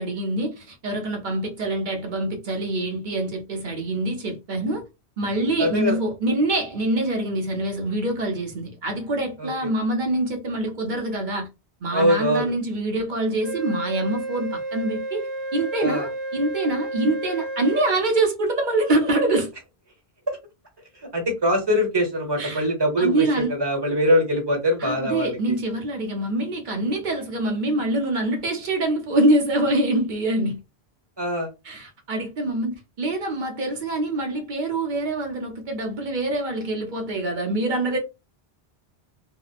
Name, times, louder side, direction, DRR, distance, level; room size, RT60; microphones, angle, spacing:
voice 1, 0.0-4.8 5.2-11.5 11.8-15.3 15.5-19.5 22.4-22.7 23.0-23.5 24.8-30.6 31.6-38.0, right 2 dB, 55° right, 0.8 m, -25 dB
voice 2, 5.6-6.0 9.4-9.5 11.9-12.4 15.8-16.1 21.1-25.4 31.2-31.5, equal, 25° right, 0.9 m, -22 dB
Wind instrument woodwind instrument, 13.4-17.9, right 2 dB, ahead, 0.8 m, -31 dB
2.8 x 2.1 x 2.4 m
omnidirectional pair, 1.0 m